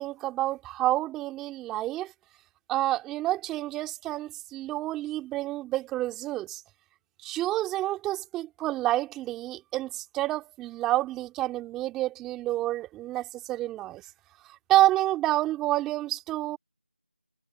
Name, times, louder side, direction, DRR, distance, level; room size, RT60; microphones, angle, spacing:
voice 1, 0.0-2.1 2.7-6.6 7.2-14.0 14.7-16.6, right 15 dB, 5° right, 2.7 m, -28 dB
figure-of-eight pair, 170°, 6 cm